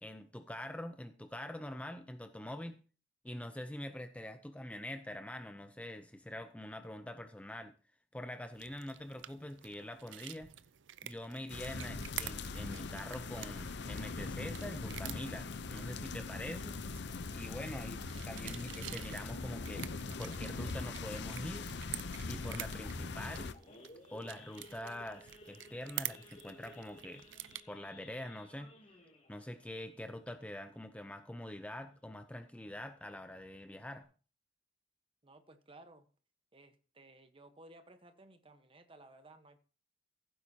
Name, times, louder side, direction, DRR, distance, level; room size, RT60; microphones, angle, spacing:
voice 1, 0.0-2.8 3.2-7.7 8.1-10.5 11.0-16.8 17.3-19.9 20.2-21.7 22.2-23.5 24.1-27.2 27.7-28.7 29.3-34.1, left 1 dB, 5° left, 0.6 m, -45 dB
sound 1, 8.5-27.6, right 13 dB, 75° right, 0.5 m, -49 dB
sound 2, 11.5-23.5, left 3 dB, 60° left, 0.7 m, -41 dB
Idling / Accelerating revving vroom / Sawing, 23.5-31.2 31.6-31.8 32.1-32.2 32.6-32.9 33.4-33.5 33.7-34.0, left 2 dB, 35° left, 2.6 m, -59 dB
voice 2, 35.2-36.1 36.5-39.6, right 2 dB, 30° right, 1.2 m, -58 dB
16.0 x 9.3 x 2.8 m
head